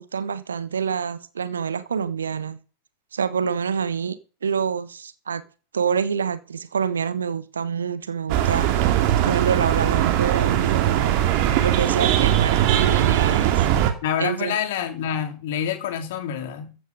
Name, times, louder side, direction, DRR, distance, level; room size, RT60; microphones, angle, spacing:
voice 1, 0.0-2.6 3.1-4.2 4.4-5.4 5.7-8.7 9.2-11.2 11.6-13.6 14.2-14.6, right 6 dB, 70° right, 1.3 m, -26 dB
sound 1, 8.3-13.9, right 11 dB, 45° right, 2.5 m, -20 dB
voice 2, 14.0-16.7, left 9 dB, 55° left, 3.0 m, -27 dB
14.5 x 9.4 x 5.3 m
figure-of-eight pair, 90°, 0 cm